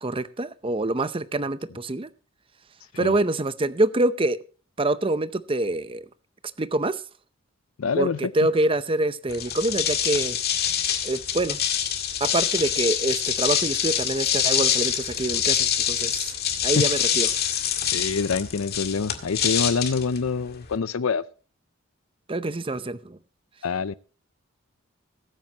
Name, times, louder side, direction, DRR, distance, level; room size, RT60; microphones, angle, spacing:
voice 1, 0.0-2.1 3.0-4.4 4.8-6.1 6.6-7.0 8.0-10.4 11.0-11.6 12.2-16.3 16.6-17.3 22.3-23.2, right 2 dB, 25° right, 0.7 m, -25 dB
voice 2, 7.8-8.3 16.8-16.9 17.9-21.2 23.6-23.9, left 5 dB, 80° left, 0.5 m, -26 dB
sound 1, 9.3-20.8, left 9 dB, 50° left, 1.9 m, -25 dB
21.0 x 8.8 x 2.9 m
head